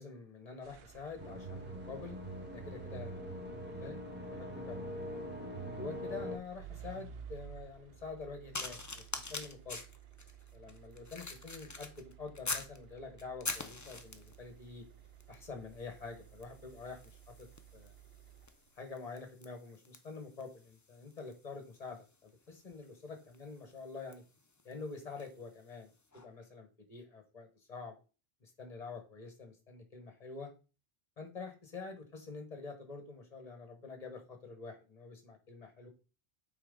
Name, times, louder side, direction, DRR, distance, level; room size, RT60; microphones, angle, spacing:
voice 1, 0.0-2.2 2.5-5.0 5.6-9.8 10.5-14.8 15.3-17.0 17.3-17.5 17.7-17.9 18.8-24.2 24.6-27.9 28.4-30.5 31.2-35.9, left 4 dB, 40° left, 5 dB, 1.5 m, -47 dB
sound 1, 0.6-18.9, right 8 dB, 75° right, 0.9 m, -55 dB
sound 2, 1.2-6.4, equal, 10° right, 1.4 m, -43 dB
sound 3, 8.5-12.8 13.2-14.4 15.2-15.4 15.7-25.4 26.1-26.3, left 3 dB, 25° left, 0.5 m, -45 dB
8.9 x 4.0 x 3.9 m, 0.34 s
omnidirectional pair, 1.0 m